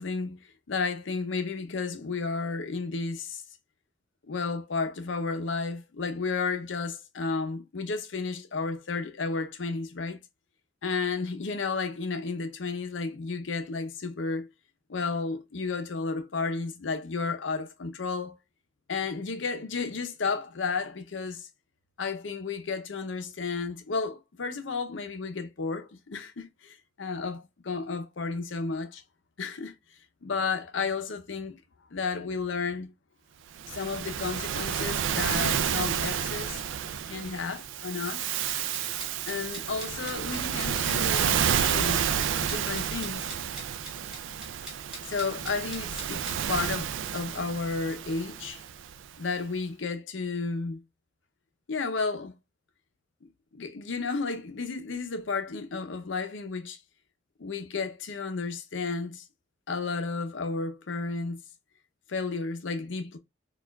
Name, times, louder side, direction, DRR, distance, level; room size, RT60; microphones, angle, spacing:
voice 1, 0.0-3.4 4.2-10.2 10.8-14.5 14.9-18.4 18.9-21.5 22.0-29.0 29.4-29.7 30.2-31.6 31.9-32.9 33.7-36.6 37.1-38.2 39.3-42.0 42.5-43.3 45.0-48.6 49.2-50.8 51.7-52.3 53.2-56.8 57.4-59.2 59.7-61.4 62.1-63.2, left 4 dB, 80° left, 0.6 m, -32 dB
Waves surf, 33.6-49.1, right 8 dB, 85° right, 0.4 m, -30 dB
sound 1, 38.7-46.4, right 1 dB, 5° right, 1.4 m, -44 dB
4.4 x 2.4 x 2.2 m
head